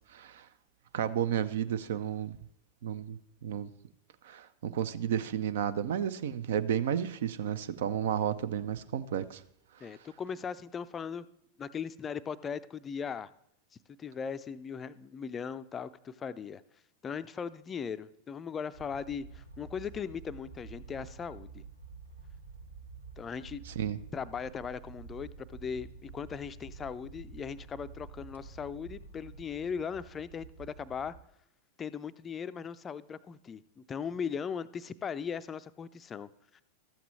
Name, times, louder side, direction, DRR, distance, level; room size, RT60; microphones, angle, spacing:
voice 1, 0.1-0.5 0.9-2.4 2.8-3.7 4.2-9.4 23.8-24.0, right 9 dB, 55° right, 0.4 m, -32 dB
voice 2, 9.8-11.3 11.6-13.3 14.0-16.6 17.0-21.6 23.2-23.6 24.1-31.1 31.8-36.6, left 6 dB, 20° left, 0.4 m, -38 dB
sound 1, 18.7-31.2, right 5 dB, 80° right, 1.0 m, -49 dB
13.5 x 8.0 x 3.2 m
figure-of-eight pair, 90°, 0 cm